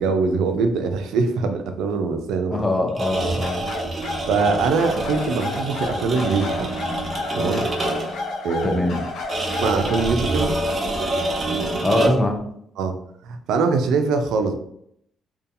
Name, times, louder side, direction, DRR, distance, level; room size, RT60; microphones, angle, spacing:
voice 1, 0.0-2.7 4.3-6.7 7.4-7.7 8.4-8.8 9.6-10.5 12.8-13.0 13.2-14.6, right 4 dB, 85° right, 7 dB, 0.3 m, -22 dB
voice 2, 2.5-3.7 8.6-9.0 11.8-12.5, left 1 dB, 15° left, 3 dB, 0.5 m, -22 dB
sound 1, 2.9-8.3 9.3-12.4, right 1 dB, 40° right, 0.6 m, -27 dB
sound 2, 3.4-10.1, left 2 dB, 85° left, 0.7 m, -31 dB
2.7 x 2.2 x 2.6 m, 0.72 s
cardioid pair, 90°, 0 cm